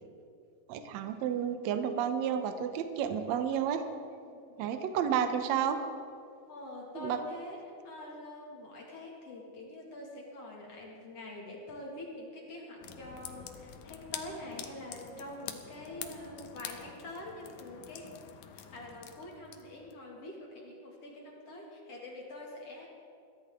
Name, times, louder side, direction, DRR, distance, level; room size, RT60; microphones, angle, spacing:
voice 1, 0.7-3.8 4.6-5.8 6.9-7.2, right 8 dB, 85° right, 7 dB, 1.5 m, -31 dB
voice 2, 6.5-18.2 18.5-22.9, left 1 dB, 45° left, -2 dB, 2.7 m, -45 dB
sound 1, 12.8-20.0, left 9 dB, 80° left, 1.7 m, -46 dB
22.0 x 15.0 x 3.7 m, 2.5 s
omnidirectional pair, 4.4 m